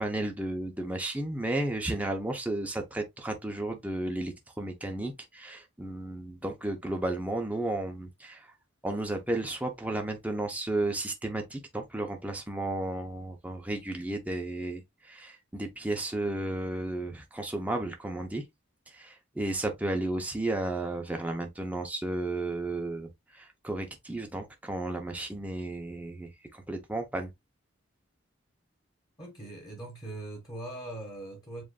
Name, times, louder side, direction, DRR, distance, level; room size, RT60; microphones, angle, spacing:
voice 1, 0.0-8.5 8.8-18.5 18.9-27.3, right 2 dB, 5° right, 0.6 m, -33 dB
voice 2, 29.2-31.6, right 2 dB, 20° left, 1.2 m, -41 dB
7.4 x 2.5 x 2.3 m
head